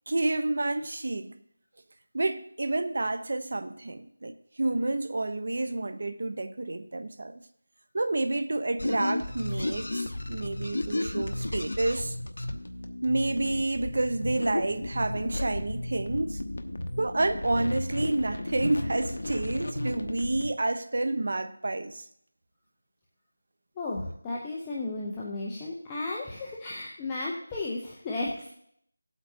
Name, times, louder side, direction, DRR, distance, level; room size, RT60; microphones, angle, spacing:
voice 1, 0.1-1.3 2.1-7.4 7.9-12.2 13.0-16.4 17.0-22.0, right 2 dB, 50° right, 0.8 m, -29 dB
sound 1, 8.8-20.5, left 1 dB, 75° left, 0.9 m, -33 dB
voice 2, 23.8-28.5, left 2 dB, 10° left, 0.7 m, -34 dB
15.5 x 8.2 x 2.7 m
figure-of-eight pair, 175°, 0 cm